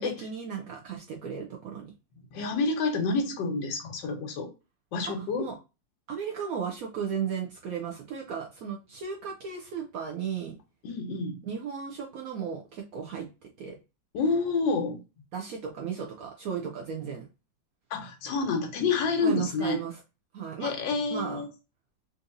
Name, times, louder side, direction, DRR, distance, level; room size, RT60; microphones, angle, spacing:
voice 1, 0.0-1.9 5.0-5.6 6.1-10.6 11.4-13.8 15.3-17.3 19.2-19.9 20.3-20.7 21.1-21.4, right 7 dB, 75° right, 0.8 m, -35 dB
voice 2, 2.3-4.5 4.9-5.5 10.8-11.4 14.1-15.0 17.9-19.8 20.6-21.5, left 4 dB, 75° left, 1.4 m, -28 dB
3.9 x 2.6 x 2.5 m
omnidirectional pair, 2.0 m